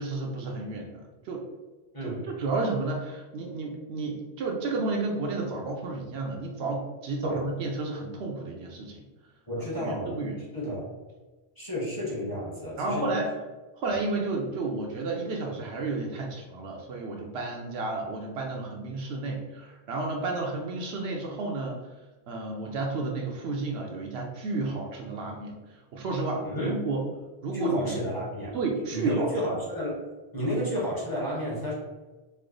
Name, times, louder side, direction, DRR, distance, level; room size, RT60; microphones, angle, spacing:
voice 1, 0.0-1.4 2.0-9.0 9.8-10.4 12.8-13.3 13.8-21.8 22.3-27.0 27.4-27.9 28.5-29.3, right 3 dB, 70° right, 1 dB, 0.8 m, -32 dB
voice 2, 1.9-2.3 7.2-7.4 9.5-10.2 10.5-10.9 11.6-13.2 26.4-26.8 27.5-28.6 28.9-30.0 30.3-31.7, equal, 20° left, -6 dB, 0.9 m, -31 dB
3.2 x 2.0 x 3.7 m, 1.2 s
omnidirectional pair, 1.1 m